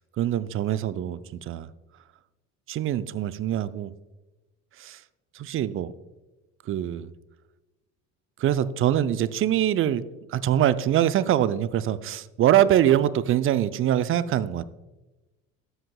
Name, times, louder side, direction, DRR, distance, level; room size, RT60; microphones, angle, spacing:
voice 1, 0.2-1.7 2.7-3.9 4.8-5.0 5.3-5.9 6.7-7.1 8.4-10.0 10.3-14.6, right 11 dB, 35° right, 15 dB, 0.5 m, -23 dB
13.0 x 7.9 x 2.3 m, 1.1 s
hypercardioid pair, 60°, 38 cm